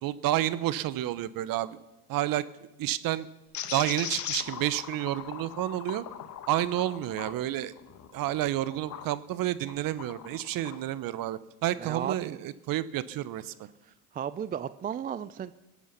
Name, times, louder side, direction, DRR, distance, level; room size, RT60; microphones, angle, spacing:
voice 1, 0.0-1.8 2.1-2.4 2.8-3.3 3.7-6.0 6.5-7.7 8.1-13.5, right 14 dB, 50° right, 16 dB, 0.9 m, -30 dB
sound 1, 3.5-9.1 9.6-10.8, left 10 dB, 40° left, 1.3 m, -40 dB
voice 2, 11.7-12.4 13.4-13.5 13.8-15.5, right 9 dB, 20° right, 15 dB, 0.4 m, -35 dB
22.5 x 8.3 x 5.7 m, 1.0 s
hypercardioid pair, 80°, 44 cm